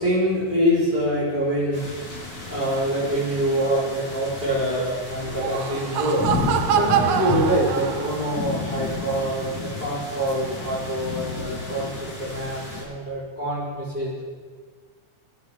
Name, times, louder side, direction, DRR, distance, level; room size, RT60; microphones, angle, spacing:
voice 1, 0.0-14.2, equal, 15° left, -10 dB, 4.8 m, -25 dB
sound 1, 1.7-12.8, left 3 dB, 75° left, 7.2 m, -32 dB
Laughter, 5.2-8.4, right 8 dB, 65° right, 1.3 m, -25 dB
26.5 x 13.0 x 3.8 m, 1.5 s
omnidirectional pair, 3.4 m